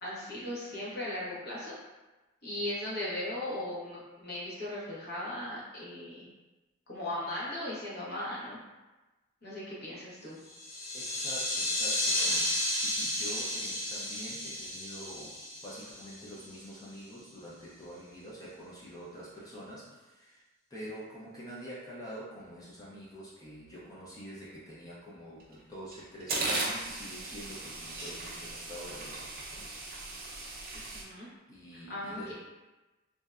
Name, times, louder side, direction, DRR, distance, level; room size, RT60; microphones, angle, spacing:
voice 1, 0.0-1.7 2.4-6.3 6.9-8.6 9.4-10.4 30.9-31.3 31.7-32.3, left 1 dB, 50° left, -7 dB, 0.8 m, -38 dB
sound 1, 10.5-16.6, left 1 dB, 80° left, 0.5 m, -33 dB
voice 2, 10.9-15.4 15.6-20.4 20.7-29.7 31.5-32.3, equal, 15° left, -7 dB, 0.4 m, -46 dB
sound 2, 25.4-25.5 25.9-31.0, right 2 dB, 45° right, 0.4 m, -37 dB
2.6 x 2.1 x 2.3 m, 1.1 s
head